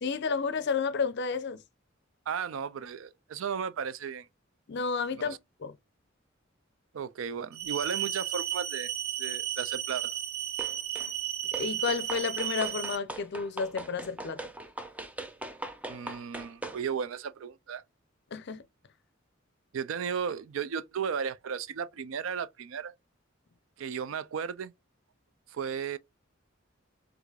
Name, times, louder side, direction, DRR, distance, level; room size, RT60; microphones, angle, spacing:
voice 1, 0.0-1.6 4.7-5.4 5.6-5.7 11.6-14.5 18.3-18.6, left 5 dB, 55° left, 0.5 m, -31 dB
voice 2, 2.3-4.3 5.2-5.4 6.9-8.9 9.2-10.1 15.9-17.8 19.7-22.9 23.8-24.7 25.5-26.0, right 7 dB, 75° right, 0.4 m, -35 dB
sound 1, 7.5-12.9, right 11 dB, 50° right, 1.1 m, -33 dB
sound 2, 10.6-11.1 11.5-16.8, right 2 dB, 5° right, 0.4 m, -41 dB
4.7 x 2.5 x 2.4 m
head